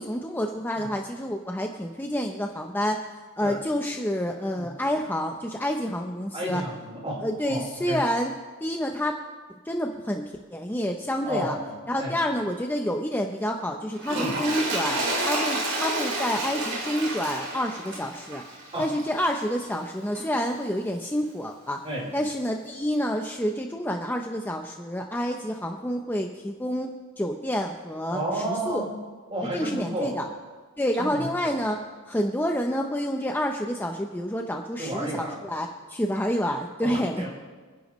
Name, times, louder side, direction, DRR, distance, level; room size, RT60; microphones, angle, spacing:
voice 1, 0.0-3.1 3.4-6.6 7.2-8.3 8.6-9.2 9.7-10.2 10.5-11.5 11.9-18.4 18.8-21.8 22.1-28.8 29.5-30.2 30.8-31.8 32.1-37.3, equal, 10° left, 2 dB, 0.7 m, -28 dB
voice 2, 6.3-8.0 11.2-11.6 12.0-12.2 14.1-14.4 18.7-18.9 21.8-22.1 28.1-28.9 29.3-30.2 31.0-31.6 34.8-35.3 36.8-37.3, right 1 dB, 25° right, -3 dB, 4.1 m, -32 dB
Toilet flush, 14.0-19.4 20.1-20.2, right 2 dB, 60° right, 3.7 m, -30 dB
27.5 x 10.5 x 3.1 m, 1.5 s
head